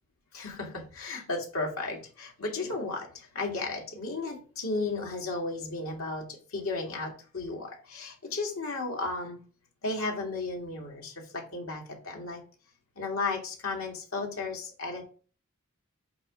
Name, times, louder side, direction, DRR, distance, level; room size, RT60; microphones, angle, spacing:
voice 1, 0.3-9.4 9.8-12.4 13.0-15.0, left 3 dB, 85° left, 0 dB, 2.1 m, -34 dB
8.4 x 2.9 x 5.0 m, 0.38 s
head